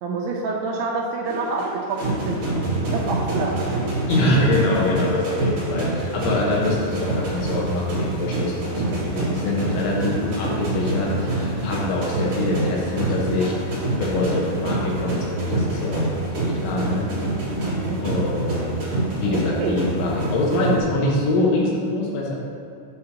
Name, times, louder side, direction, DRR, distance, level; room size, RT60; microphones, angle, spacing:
voice 1, 0.0-2.4 2.8-3.8 17.5-18.0 19.2-19.8, right 3 dB, 80° right, -2 dB, 2.4 m, -27 dB
sound 1, 1.3-20.8, right 2 dB, 45° right, 2.3 m, -26 dB
voice 2, 4.1-17.0 18.0-18.8 19.2-22.4, left 2 dB, 85° left, -4 dB, 3.6 m, -24 dB
8.6 x 6.6 x 2.9 m, 2.5 s
omnidirectional pair, 5.2 m